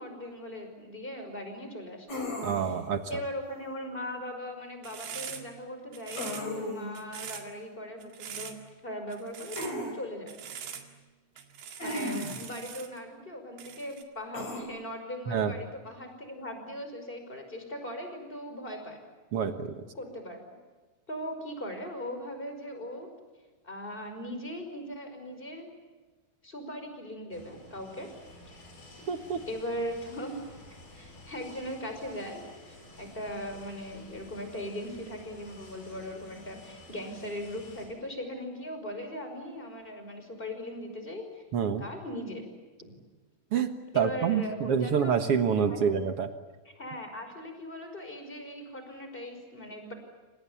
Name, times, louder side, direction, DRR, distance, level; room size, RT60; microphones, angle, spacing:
voice 1, 0.0-2.1 2.6-2.8 3.1-8.6 8.8-10.4 11.8-19.0 19.9-20.4 21.1-23.1 23.6-25.7 26.4-28.1 29.0-29.1 29.5-30.4 30.7-41.4 41.8-42.4 42.8-42.9 43.9-45.2 45.7-45.9 46.8-49.9, equal, 15° left, 6 dB, 5.6 m, -39 dB
sound 1, 2.1-2.9 6.2-7.0 9.6-9.9 11.8-12.5 14.3-14.6, left 1 dB, 45° left, 5.5 m, -35 dB
voice 2, 2.4-3.1 15.3-15.5 19.3-19.8 29.1-29.4 41.5-41.9 43.5-46.3, right 7 dB, 55° right, 8 dB, 1.7 m, -27 dB
sound 2, 4.8-5.6 5.9-6.6 6.9-7.5 8.0-8.6 9.1-9.8 10.3-10.9 11.4-13.0 13.6-14.0, right 8 dB, 90° right, 4.1 m, -42 dB
sound 3, 27.3-37.9, left 2 dB, 60° left, 8.9 m, -51 dB
28.5 x 26.0 x 7.1 m, 1.3 s
omnidirectional pair, 4.4 m